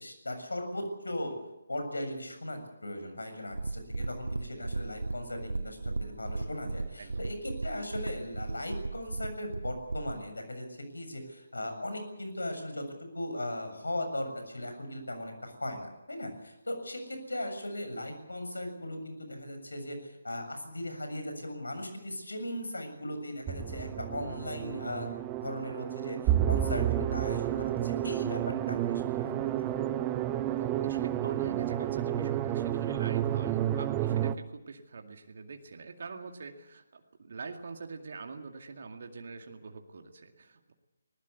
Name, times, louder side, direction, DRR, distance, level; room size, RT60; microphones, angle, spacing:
voice 1, 0.0-1.4 1.7-10.7 10.9-12.9 13.1-25.2 25.4-29.8, left 1 dB, 70° left, 6 dB, 7.2 m, -38 dB
sound 1, 3.5-10.2, right 3 dB, 70° right, 1.0 m, -36 dB
sound 2, 23.5-34.3, right 12 dB, 15° right, 0.9 m, -30 dB
voice 2, 30.5-40.7, right 4 dB, 50° right, 5 dB, 2.2 m, -44 dB
20.5 x 20.0 x 8.4 m, 0.96 s
figure-of-eight pair, 145°, 0 cm